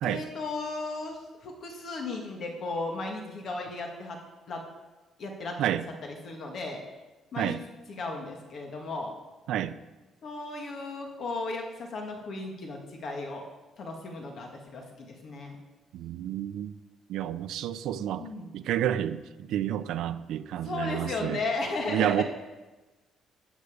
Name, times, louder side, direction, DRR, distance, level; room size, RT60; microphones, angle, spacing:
voice 1, 0.0-4.2 4.5-4.6 5.2-5.6 6.0-6.8 7.3-7.6 7.9-9.1 10.2-13.4 13.8-15.6 18.2-18.5 20.6-22.2, left 3 dB, 45° left, 2 dB, 1.8 m, -35 dB
voice 2, 15.9-16.7 17.1-18.3 18.5-19.2 19.5-21.4 21.9-22.2, right 11 dB, 70° right, 11 dB, 0.5 m, -29 dB
13.5 x 8.3 x 5.0 m, 1.2 s
cardioid pair, 170°, 0 cm